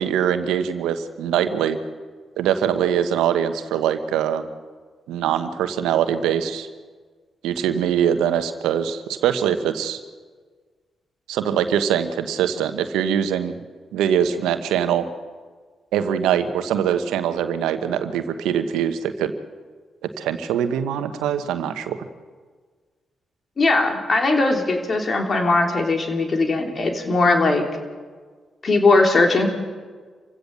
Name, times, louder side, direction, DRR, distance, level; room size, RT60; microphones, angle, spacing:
voice 1, 0.0-1.8 2.4-4.5 5.1-6.7 7.4-10.0 11.3-13.5 13.9-15.1 15.9-19.3 20.2-22.1, right 9 dB, 80° right, 9 dB, 1.1 m, -23 dB
voice 2, 23.6-27.6 28.6-29.5, left 3 dB, 50° left, 3 dB, 3.3 m, -19 dB
27.5 x 16.0 x 6.8 m, 1.5 s
hypercardioid pair, 40°, 0 cm